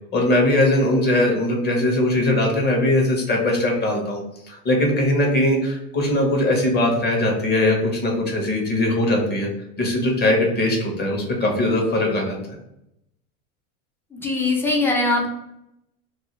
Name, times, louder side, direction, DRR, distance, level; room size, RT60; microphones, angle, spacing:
voice 1, 0.1-4.2 4.5-9.5 9.8-12.4, left 1 dB, 25° left, 0 dB, 0.8 m, -20 dB
voice 2, 14.1-15.3, left 2 dB, 5° left, -1 dB, 0.3 m, -21 dB
2.4 x 2.3 x 2.9 m, 0.82 s
supercardioid pair, 110°, 39 cm